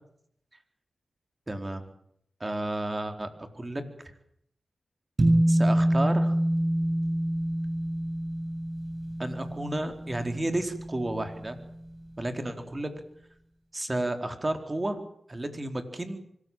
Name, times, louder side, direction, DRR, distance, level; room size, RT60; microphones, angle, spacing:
voice 1, 1.5-1.8 2.4-3.3 3.5-3.8 5.5-6.4 9.2-11.6 12.2-12.9 13.7-15.0 15.3-16.2, right 1 dB, 30° right, 7 dB, 4.3 m, -31 dB
sound 1, 5.2-11.8, right 1 dB, 50° right, 7.7 m, -27 dB
25.0 x 14.5 x 9.2 m, 0.70 s
cardioid pair, 45°, 0 cm